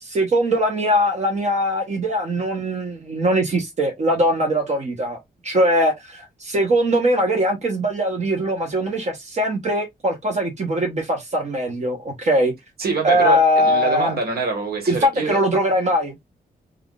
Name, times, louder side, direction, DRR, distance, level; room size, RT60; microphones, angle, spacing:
voice 1, 0.0-12.5 13.0-14.2 14.9-16.2, equal, 45° right, 0.9 m, -21 dB
voice 2, 12.8-15.4, right 4 dB, 75° right, 1.4 m, -25 dB
3.4 x 2.4 x 2.3 m
cardioid pair, 100°, 16 cm